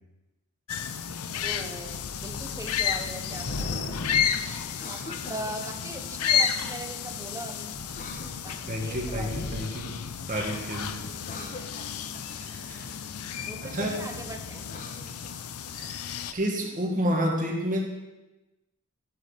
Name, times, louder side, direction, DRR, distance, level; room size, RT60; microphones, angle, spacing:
sound 1, 0.7-16.3, left 8 dB, 80° left, 0.6 m, -32 dB
Thunder / Rain, 1.0-1.1 1.4-5.5 6.2-6.7 7.1-7.3 7.5-11.3, left 2 dB, 55° left, 1.1 m, -40 dB
voice 1, 1.4-3.7 4.9-7.8 8.4-9.6 11.3-11.7 12.7-12.8 13.5-14.6, right 2 dB, 15° right, 5 dB, 0.9 m, -40 dB
Cough, 4.7-5.8 7.9-9.1 11.1-12.3 14.5-15.8, left 2 dB, 35° left, 1.1 m, -45 dB
voice 2, 8.7-11.0 12.3-12.8 13.6-14.0 15.7-16.0 16.3-17.8, equal, 35° right, 0 dB, 1.8 m, -30 dB
12.5 x 6.8 x 5.1 m, 1.1 s
head